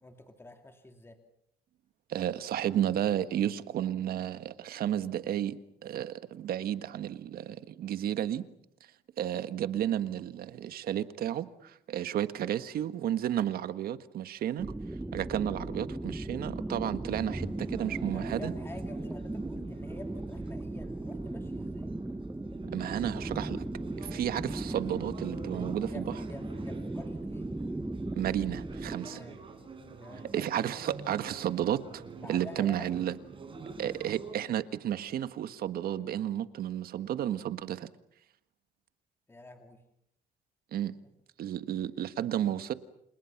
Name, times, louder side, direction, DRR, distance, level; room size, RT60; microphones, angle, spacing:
voice 1, 0.0-1.2 18.1-22.0 24.0-24.2 25.9-27.5 29.0-29.4 30.0-30.5 32.2-32.9 39.3-39.8 41.0-41.1, left 2 dB, 15° left, 2.5 m, -49 dB
voice 2, 2.1-8.4 9.2-14.7 15.1-18.5 22.7-23.6 24.0-26.0 28.2-29.2 30.3-32.0 32.3-33.1 33.8-37.9 40.7-40.9 41.4-42.7, right 11 dB, 60° right, 1.6 m, -32 dB
sound 1, 14.6-29.0, right 2 dB, 10° right, 1.2 m, -37 dB
sound 2, 17.2-34.3, right 4 dB, 30° right, 6.7 m, -47 dB
29.5 x 27.5 x 6.0 m
cardioid pair, 110°, 17 cm